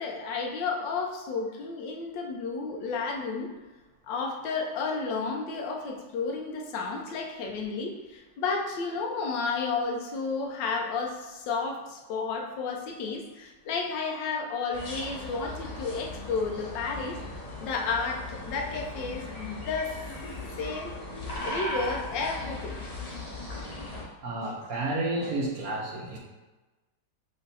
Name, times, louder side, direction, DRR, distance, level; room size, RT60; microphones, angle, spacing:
voice 1, 0.0-3.5 4.1-17.2 17.6-20.0 20.6-20.9 21.4-22.8, left 4 dB, 80° left, 1 dB, 1.4 m, -32 dB
sound 1, 14.7-24.0, left 2 dB, 35° left, 0.6 m, -38 dB
voice 2, 24.2-26.2, right 2 dB, 60° right, -1 dB, 1.1 m, -31 dB
5.1 x 2.6 x 4.0 m, 1.1 s
omnidirectional pair, 1.9 m